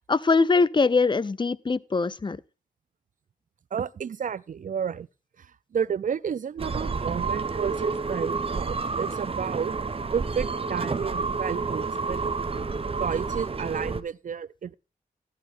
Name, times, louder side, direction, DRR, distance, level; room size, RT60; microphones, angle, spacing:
voice 1, 0.1-2.4, left 4 dB, 30° left, 0.5 m, -22 dB
voice 2, 3.7-5.1 5.4-5.5 5.7-9.8 10.1-12.4 13.0-14.7, right 7 dB, 55° right, 0.4 m, -31 dB
sound 1, 6.6-14.0, right 4 dB, 35° right, 0.8 m, -30 dB
14.0 x 11.0 x 2.5 m
cardioid pair, 70°, 16 cm